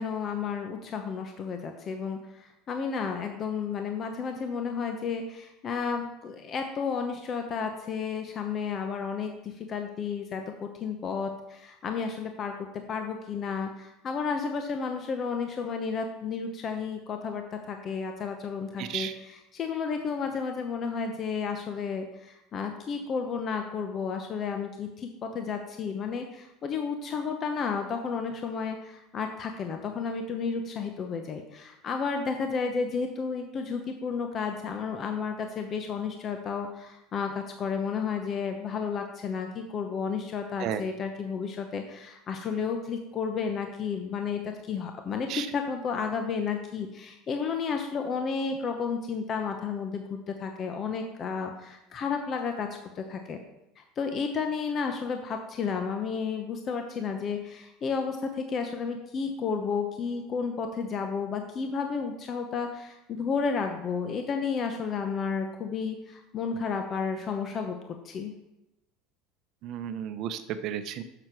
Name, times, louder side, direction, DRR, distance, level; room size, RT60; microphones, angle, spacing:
voice 1, 0.0-52.7 53.0-53.4 53.8-67.8 68.0-68.3, left 5 dB, 35° left, 5 dB, 0.8 m, -32 dB
voice 2, 18.8-19.1 40.6-40.8 45.3-45.5 69.6-71.0, right 10 dB, 50° right, 10 dB, 0.7 m, -33 dB
6.8 x 6.4 x 6.0 m, 0.89 s
supercardioid pair, 130°, 0 cm